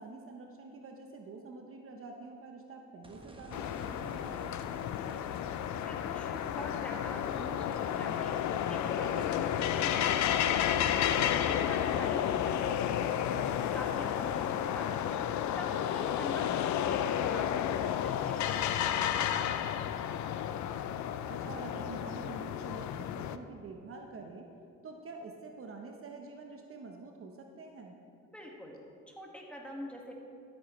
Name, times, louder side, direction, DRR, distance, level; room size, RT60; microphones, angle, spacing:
voice 1, 0.0-4.4 21.3-24.5 24.8-28.0, right 3 dB, 45° right, 2 dB, 0.9 m, -47 dB
sound 1, 3.0-15.4 15.8-15.9 19.3-19.4, right 1 dB, 15° right, 1.2 m, -53 dB
sound 2, 3.5-23.4, left 10 dB, 70° left, 0.5 m, -32 dB
voice 2, 5.8-8.4 8.7-11.0 11.2-19.9 28.3-28.8 29.1-30.1, equal, 5° left, -1 dB, 1.8 m, -45 dB
13.0 x 8.6 x 3.2 m, 2.5 s
cardioid pair, 90°, 30 cm